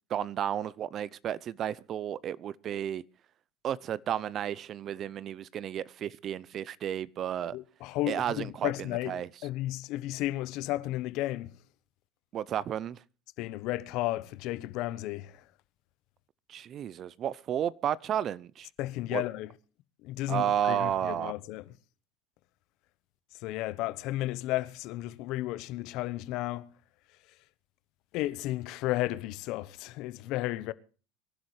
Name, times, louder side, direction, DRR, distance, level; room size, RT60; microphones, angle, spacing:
voice 1, 0.1-3.0 3.6-7.6 8.1-8.7 9.1-9.3 12.3-13.0 16.5-18.7 19.1-19.2 20.3-21.3, right 10 dB, 40° right, 0.7 m, -32 dB
voice 2, 7.5-11.6 13.4-15.5 18.8-19.5 20.0-21.7 23.3-26.7 27.3-27.4 28.1-30.7, left 16 dB, 60° left, 0.9 m, -33 dB
24.5 x 11.5 x 3.2 m
hypercardioid pair, 95°, 0 cm